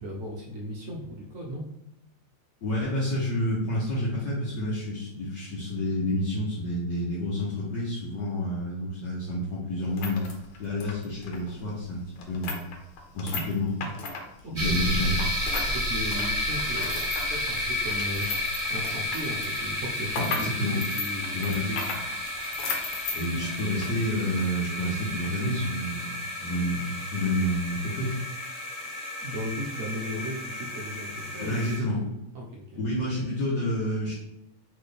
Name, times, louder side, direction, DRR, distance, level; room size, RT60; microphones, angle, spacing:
voice 1, 0.0-1.6 14.4-15.0 15.7-21.8 23.3-23.5 29.2-31.6 32.3-32.8, equal, 65° right, -1 dB, 0.8 m, -36 dB
voice 2, 2.6-10.3 10.6-12.6 13.1-13.9 14.5-15.2 20.2-20.8 21.3-21.8 23.1-28.1 31.4-32.1 32.8-34.1, left 1 dB, 60° left, -7 dB, 1.5 m, -29 dB
sound 1, 9.8-15.7 16.0-24.0 24.3-24.4 25.0-25.3, left 4 dB, 85° left, 1.7 m, -36 dB
sound 2, 14.6-31.8, left 1 dB, 30° right, 0.7 m, -32 dB
4.2 x 3.7 x 3.3 m, 0.84 s
omnidirectional pair, 2.3 m